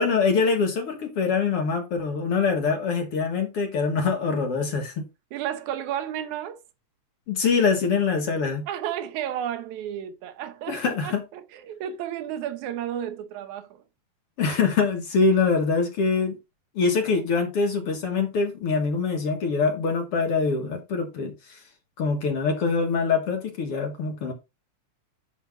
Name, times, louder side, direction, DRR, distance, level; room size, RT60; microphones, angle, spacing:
voice 1, 0.0-5.0 7.3-8.6 10.7-11.2 14.4-16.4 16.8-21.6 22.0-24.3, left 4 dB, 55° left, 2.3 m, -24 dB
voice 2, 5.3-6.6 8.7-13.8, right 10 dB, 80° right, 2.3 m, -32 dB
10.0 x 3.4 x 5.9 m
omnidirectional pair, 3.3 m